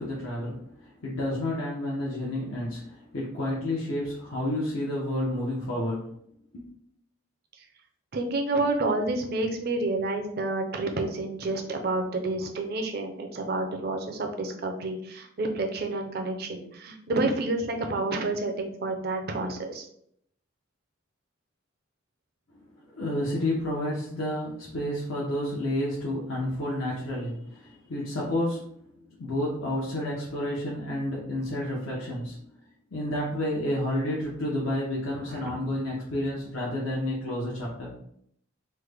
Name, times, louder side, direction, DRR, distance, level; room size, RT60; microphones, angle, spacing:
voice 1, 0.0-6.1 6.5-6.7 22.8-32.4 32.9-37.9, left 1 dB, 80° left, -5 dB, 0.7 m, -30 dB
voice 2, 8.1-19.9 35.2-35.5, right 2 dB, 50° right, 4 dB, 0.5 m, -29 dB
3.2 x 2.1 x 3.3 m, 0.69 s
head